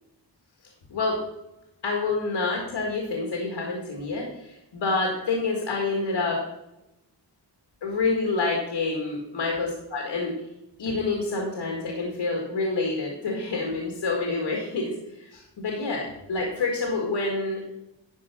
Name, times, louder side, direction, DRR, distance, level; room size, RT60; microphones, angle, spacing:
voice 1, 1.8-6.4 7.8-10.3 10.8-17.6, left 3 dB, 75° left, 0 dB, 1.9 m, -27 dB
11.0 x 4.6 x 5.9 m, 0.92 s
wide cardioid pair, 90°, 45 cm